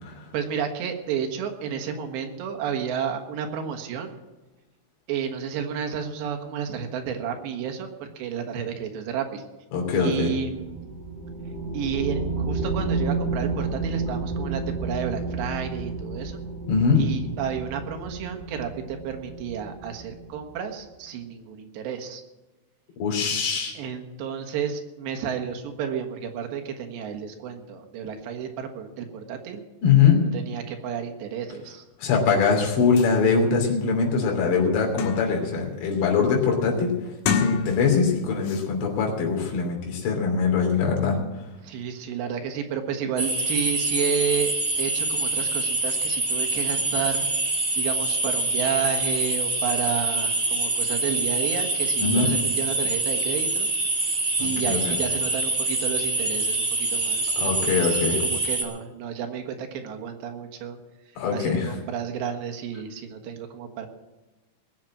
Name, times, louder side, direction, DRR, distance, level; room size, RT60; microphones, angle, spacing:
voice 1, 0.3-4.1 5.1-9.4 9.9-10.9 11.7-16.4 17.0-22.2 23.8-29.6 30.3-31.8 41.6-47.3 47.8-53.7 54.4-60.8 61.3-63.9, right 7 dB, 70° right, 4 dB, 3.4 m, -31 dB
voice 2, 9.7-10.3 16.7-17.0 23.0-23.8 29.8-30.2 32.0-36.9 37.3-41.2 52.0-52.3 54.4-55.0 57.4-58.2 61.2-61.8, left 5 dB, 65° left, 0 dB, 5.0 m, -22 dB
sound 1, 10.5-20.6, right 3 dB, 35° right, 7.4 m, -31 dB
Trash bin, 32.7-32.8 33.0-33.1 33.7-33.8 34.2-35.5 35.9-36.3 37.1-38.1 38.4-38.7, left 6 dB, 85° left, 3.8 m, -29 dB
sound 2, 43.2-58.6, right 2 dB, 55° right, 0.7 m, -25 dB
19.5 x 7.6 x 7.4 m, 1.1 s
omnidirectional pair, 5.5 m